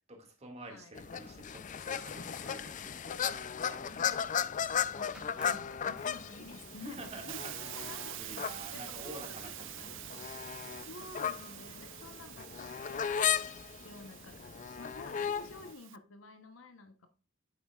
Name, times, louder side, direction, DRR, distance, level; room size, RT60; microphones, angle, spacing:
voice 1, 0.1-4.1 6.8-7.6 8.2-9.9 15.1-15.2, right 2 dB, 30° right, 3 dB, 2.1 m, -49 dB
sound 1, 0.9-15.7, left 8 dB, 40° left, 0.4 m, -36 dB
sound 2, 1.9-2.8 4.2-4.3 4.5-4.9 5.1-6.5, right 1 dB, 5° right, 2.4 m, -57 dB
voice 2, 3.9-4.6 4.9-7.4 7.7-8.2 8.7-9.9 10.8-13.4 13.8-17.1, left 3 dB, 70° left, 7 dB, 1.0 m, -51 dB
Hiss, 6.0-16.0, right 15 dB, 65° right, 0.5 m, -47 dB
9.1 x 8.3 x 2.4 m, 0.35 s
head